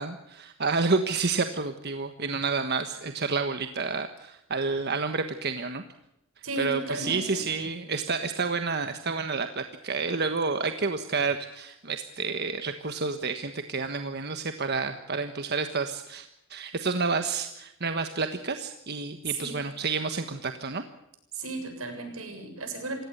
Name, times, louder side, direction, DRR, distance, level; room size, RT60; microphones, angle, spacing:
voice 1, 0.0-5.8 6.4-20.8, right 4 dB, 50° right, 8 dB, 1.4 m, -30 dB
voice 2, 6.4-7.5 19.3-19.7 21.3-23.0, right 3 dB, 80° right, 6 dB, 7.4 m, -34 dB
28.0 x 17.5 x 6.8 m, 0.82 s
head